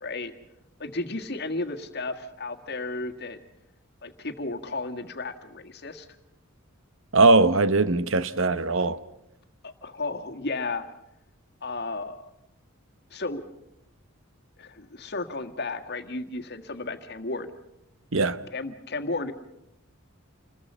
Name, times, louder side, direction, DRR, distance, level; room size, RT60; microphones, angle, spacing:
voice 1, 0.0-0.3 0.8-3.4 4.0-6.1 9.6-10.9 11.6-12.3 13.1-13.4 14.6-17.5 18.5-19.3, left 3 dB, 50° left, 1.6 m, -33 dB
voice 2, 7.1-9.0 18.1-18.4, right 3 dB, 60° right, 1.0 m, -20 dB
29.0 x 21.0 x 5.5 m
head